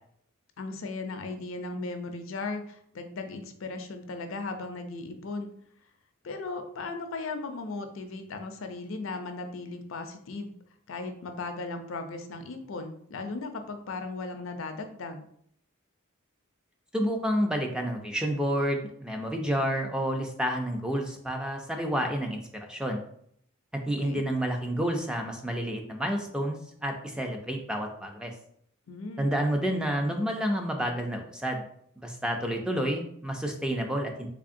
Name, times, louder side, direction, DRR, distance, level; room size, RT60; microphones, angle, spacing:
voice 1, 0.6-5.5 6.2-10.5 10.9-15.3 24.0-24.2 28.9-29.3, left 3 dB, 70° left, 6 dB, 0.5 m, -37 dB
voice 2, 16.9-23.0 23.9-28.3 29.2-31.6 32.0-34.3, equal, 5° right, 2 dB, 0.4 m, -29 dB
3.5 x 3.4 x 2.5 m, 0.66 s
head